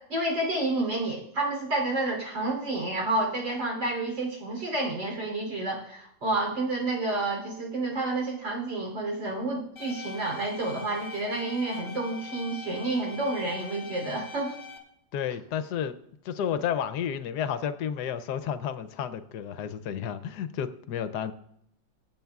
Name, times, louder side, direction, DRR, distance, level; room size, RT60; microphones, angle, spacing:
voice 1, 0.1-14.6, right 2 dB, 85° right, -1 dB, 4.0 m, -29 dB
sound 1, 9.8-14.8, left 5 dB, 10° left, 2.1 m, -43 dB
voice 2, 15.1-16.0 16.2-21.3, left 8 dB, 70° left, 13 dB, 1.1 m, -31 dB
23.0 x 7.8 x 2.3 m, 0.73 s
omnidirectional pair, 2.0 m